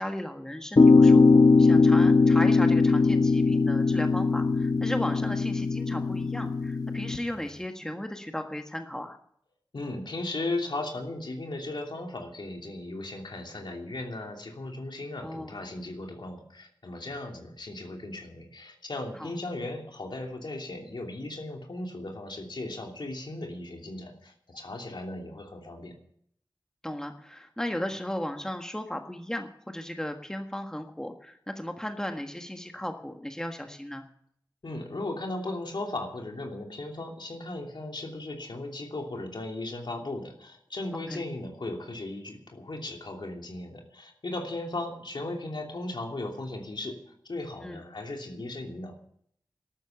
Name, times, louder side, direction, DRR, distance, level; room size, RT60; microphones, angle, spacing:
voice 1, 0.0-9.2 15.2-15.5 19.2-19.3 26.8-34.0 40.9-41.3 47.6-47.8, left 1 dB, 5° left, 5 dB, 1.6 m, -35 dB
sound 1, 0.8-7.2, left 4 dB, 50° left, 1.1 m, -20 dB
voice 2, 9.7-25.9 34.6-47.0 47.3-48.9, left 2 dB, 70° left, 2 dB, 3.0 m, -36 dB
14.0 x 12.0 x 7.0 m, 0.67 s
wide cardioid pair, 75°, 8 cm